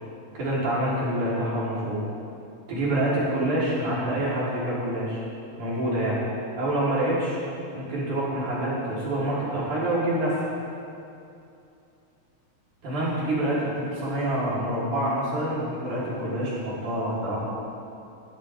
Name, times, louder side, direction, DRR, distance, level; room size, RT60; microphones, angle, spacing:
voice 1, 0.3-2.0 2.7-5.2 5.6-6.2 6.6-7.4 7.7-10.4 12.8-17.5, right 1 dB, 85° right, -8 dB, 5.7 m, -26 dB
21.5 x 14.0 x 3.8 m, 2.6 s
omnidirectional pair, 3.4 m